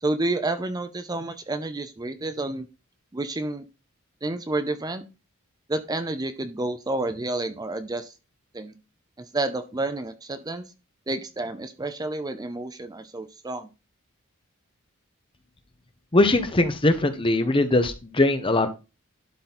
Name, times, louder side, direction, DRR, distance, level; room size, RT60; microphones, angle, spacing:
voice 1, 0.0-2.7 3.1-3.6 4.2-5.0 5.7-8.1 8.5-8.8 9.2-10.6 11.1-13.7, right 2 dB, 20° right, 10 dB, 0.6 m, -30 dB
voice 2, 16.1-18.7, left 2 dB, 25° left, 9 dB, 0.9 m, -21 dB
12.0 x 4.0 x 4.2 m, 0.29 s
head